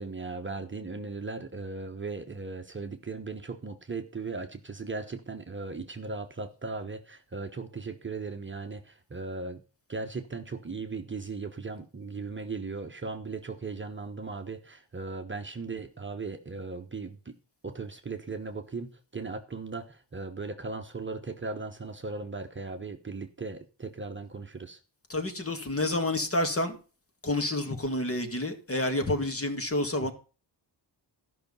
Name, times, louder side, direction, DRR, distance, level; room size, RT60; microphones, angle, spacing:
voice 1, 0.0-9.6 9.9-17.3 17.6-24.8, right 4 dB, 25° right, 1.1 m, -37 dB
voice 2, 25.1-26.8 27.2-30.1, left 1 dB, 30° left, 2.1 m, -29 dB
13.0 x 5.9 x 5.5 m
cardioid pair, 95°, 44 cm